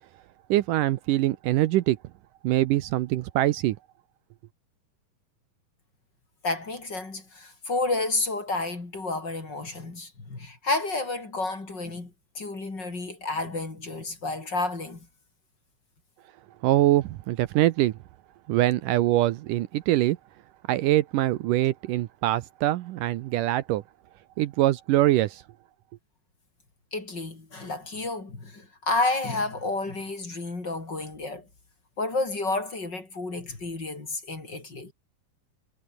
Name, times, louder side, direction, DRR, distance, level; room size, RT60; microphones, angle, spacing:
voice 1, 0.5-2.0 2.4-3.8 16.6-17.9 18.5-20.2 20.7-23.8 24.4-25.4, right 15 dB, 75° right, 2.3 m, -23 dB
voice 2, 6.4-15.1 26.9-31.5 32.0-34.9, left 3 dB, 30° left, 4.8 m, -31 dB
omnidirectional pair, 4.1 m